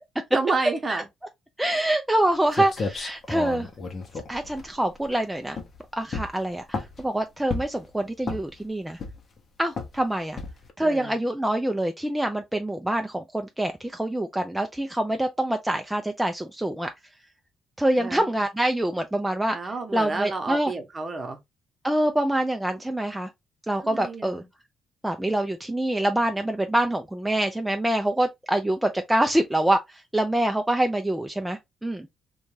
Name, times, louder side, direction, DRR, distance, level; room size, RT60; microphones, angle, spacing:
voice 1, 0.3-1.1 1.7-1.9 10.8-11.1 18.0-18.3 19.5-21.4 23.8-24.5, right 3 dB, 35° right, 0.8 m, -30 dB
voice 2, 1.6-3.7 4.3-5.6 6.0-9.0 9.6-10.4 10.8-16.9 17.8-20.7 21.8-23.3 23.7-24.4 25.0-32.1, right 1 dB, 5° right, 0.3 m, -25 dB
sound 1, 2.2-2.3 2.5-5.1 5.5-5.8 6.1-7.1 7.5-7.9 8.2-8.6 9.0-9.4 9.8-10.0 10.4-10.7, left 4 dB, 45° left, 0.7 m, -32 dB
2.6 x 2.2 x 3.0 m
cardioid pair, 90°, 0 cm